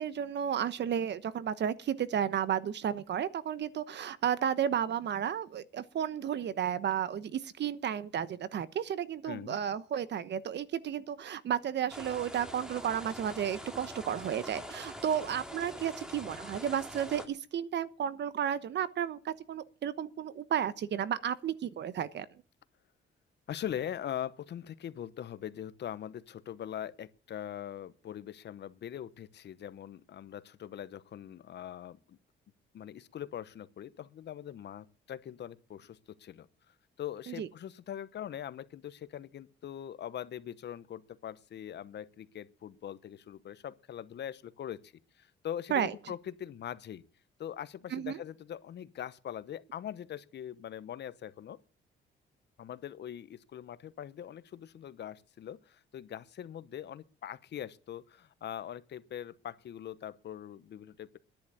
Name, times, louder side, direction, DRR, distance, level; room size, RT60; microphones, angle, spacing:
voice 1, 0.0-22.3 37.3-37.5 45.7-45.9 47.9-48.2, right 9 dB, 60° right, 1.1 m, -33 dB
voice 2, 9.2-9.6 23.5-32.2 32.7-47.0 47.4-51.6 52.6-61.2, left 10 dB, 60° left, 1.0 m, -42 dB
sound 1, 11.9-17.3, equal, 5° right, 2.6 m, -44 dB
10.5 x 10.5 x 8.5 m
cardioid pair, 90°, 20 cm